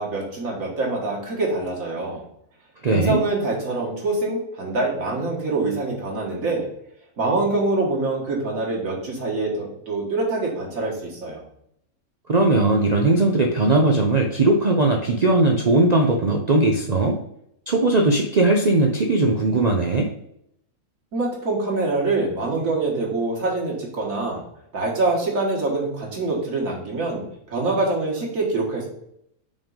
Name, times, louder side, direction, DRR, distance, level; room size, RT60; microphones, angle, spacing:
voice 1, 0.0-2.2 2.9-6.7 7.2-11.4 21.1-24.4 24.7-28.9, right 2 dB, 65° right, -2 dB, 1.9 m, -25 dB
voice 2, 2.8-3.2 12.3-17.2 17.7-20.1, right 2 dB, 90° right, 1 dB, 0.3 m, -19 dB
5.2 x 3.6 x 5.3 m, 0.76 s
omnidirectional pair, 1.6 m